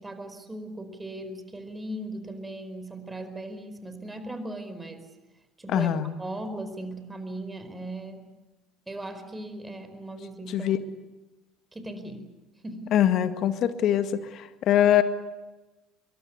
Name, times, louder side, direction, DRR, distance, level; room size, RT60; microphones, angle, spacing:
voice 1, 0.0-5.1 5.6-5.9 6.2-8.2 8.9-10.7 11.7-12.2 12.6-12.9, right 1 dB, 15° right, 9 dB, 4.7 m, -38 dB
voice 2, 5.7-6.1 10.5-10.8 12.9-15.0, left 11 dB, 50° left, 9 dB, 2.0 m, -23 dB
26.0 x 22.5 x 8.3 m, 1.1 s
figure-of-eight pair, 65°, 0 cm